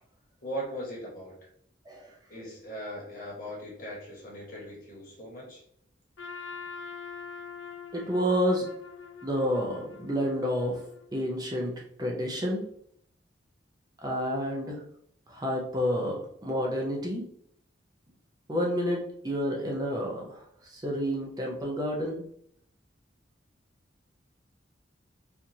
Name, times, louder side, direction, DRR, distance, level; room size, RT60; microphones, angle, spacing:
voice 1, 0.4-1.5 2.3-5.6, equal, 45° left, -3 dB, 1.3 m, -39 dB
Trumpet, 6.2-11.3, left 6 dB, 80° left, 0.6 m, -44 dB
voice 2, 7.9-8.7 9.2-10.8 11.1-12.6 14.0-14.8 15.3-17.3 18.5-22.2, equal, 20° right, -1 dB, 0.5 m, -29 dB
4.4 x 2.5 x 2.7 m, 0.68 s
head